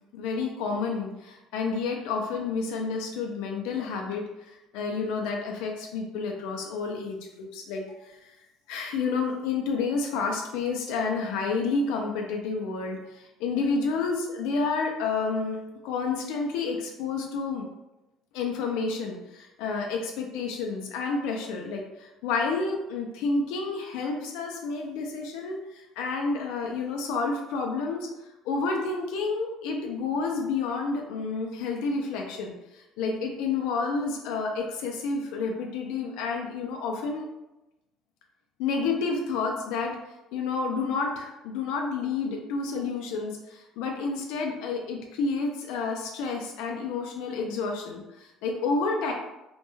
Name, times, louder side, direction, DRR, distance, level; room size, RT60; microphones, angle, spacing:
voice 1, 0.1-8.3 8.7-15.6 15.8-17.7 18.3-28.1 28.4-37.3 38.6-40.0 40.3-49.1, left 4 dB, 85° left, 2 dB, 0.3 m, -30 dB
2.2 x 2.1 x 2.9 m, 0.96 s
cardioid pair, 135°, 0 cm